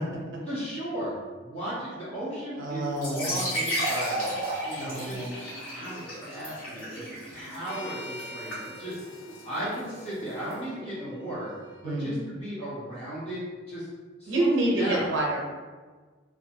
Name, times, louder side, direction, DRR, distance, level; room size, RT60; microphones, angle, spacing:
voice 1, 0.5-5.2 5.7-7.1 7.3-9.0 9.4-11.5 11.8-13.9 14.2-15.1, right 1 dB, 30° left, -10 dB, 1.4 m, -36 dB
sound 1, 1.9-11.4, equal, 10° left, 0.7 m, -48 dB
voice 2, 2.6-3.6 4.8-5.3 11.8-12.1 14.3-15.4, right 1 dB, 65° right, -2 dB, 0.5 m, -28 dB
sound 2, 2.9-10.5, equal, 75° left, 1.4 m, -34 dB
sound 3, 7.6-11.8, left 1 dB, 55° left, 0.4 m, -46 dB
2.6 x 2.4 x 2.6 m, 1.4 s
head